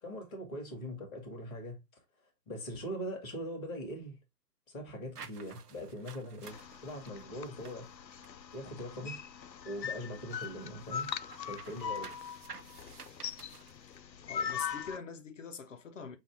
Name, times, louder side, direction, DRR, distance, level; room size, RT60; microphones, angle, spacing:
voice 1, 0.0-2.0 2.5-4.2 4.7-7.9 8.5-9.2 9.6-11.1 11.4-12.1, equal, 5° left, 0.6 m, -41 dB
sound 1, 5.1-9.4 9.7-14.0, right 6 dB, 65° right, 0.8 m, -53 dB
sound 2, 6.4-15.0, left 7 dB, 90° left, 0.6 m, -41 dB
voice 2, 14.2-16.2, left 5 dB, 50° left, 0.7 m, -44 dB
5.8 x 2.6 x 3.4 m
figure-of-eight pair, 145°, 50 cm